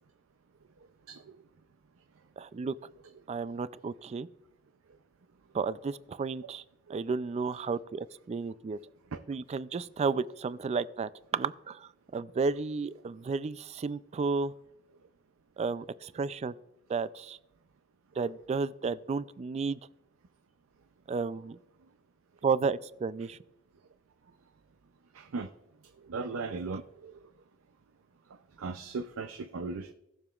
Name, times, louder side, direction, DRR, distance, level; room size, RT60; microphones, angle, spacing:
voice 1, 2.4-2.7 3.3-4.3 5.5-6.6 6.9-8.8 9.3-14.5 15.6-16.5 16.9-17.4 18.2-19.8 21.1-21.6 22.4-23.4, right 4 dB, 30° right, 16 dB, 0.3 m, -32 dB
voice 2, 25.1-25.5 26.0-27.1 28.6-29.9, right 4 dB, 90° right, 8 dB, 0.5 m, -37 dB
19.0 x 6.9 x 2.4 m, 0.88 s
head